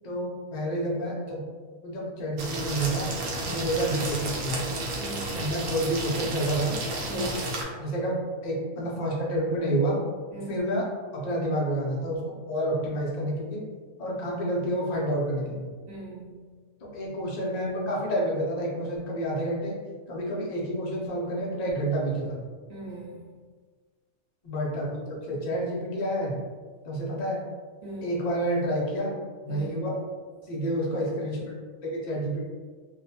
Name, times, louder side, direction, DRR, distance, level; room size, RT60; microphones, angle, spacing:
voice 1, 0.0-1.4 1.8-3.1 3.4-4.7 5.3-6.8 7.1-7.3 7.8-8.2 8.4-10.0 10.5-10.8 11.1-12.2 12.5-13.6 14.0-15.7 16.8-19.8 20.1-22.5 24.4-26.4 26.8-27.4 28.0-29.1 29.4-29.9 30.5-31.5 31.8-32.4, right 1 dB, 90° left, -4 dB, 0.3 m, -29 dB
sound 1, 2.4-7.6, right 2 dB, 70° right, 0.9 m, -32 dB
voice 2, 3.3-3.7 5.0-5.4 7.0-7.3 10.3-10.6 15.9-16.6 22.7-23.3 27.8-28.3 29.5-29.8, right 2 dB, 45° right, -7 dB, 1.0 m, -41 dB
2.6 x 2.1 x 2.7 m, 1.5 s
omnidirectional pair, 1.5 m